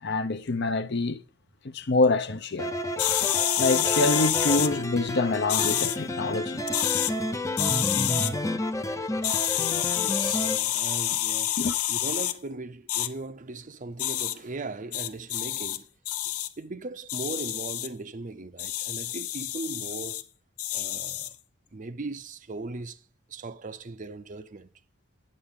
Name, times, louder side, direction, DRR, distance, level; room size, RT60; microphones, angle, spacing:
voice 1, 0.0-1.2 1.6-2.7 3.6-7.0 11.6-11.8, left 2 dB, 50° left, 0.8 m, -26 dB
sound 1, 2.6-10.6, left 1 dB, 15° left, 0.6 m, -30 dB
sound 2, 3.0-4.7 5.5-6.0 6.6-7.1 7.6-8.3 9.2-12.3 12.9-13.1 14.0-14.3 14.9-15.8 16.1-16.5 17.1-17.9 18.6-20.2 20.6-21.3, left 13 dB, 90° left, 0.8 m, -28 dB
voice 2, 10.0-11.6 11.9-15.9 16.6-20.2 20.7-21.3 21.7-24.7, right 3 dB, 35° right, 0.5 m, -38 dB
9.8 x 8.7 x 3.7 m
head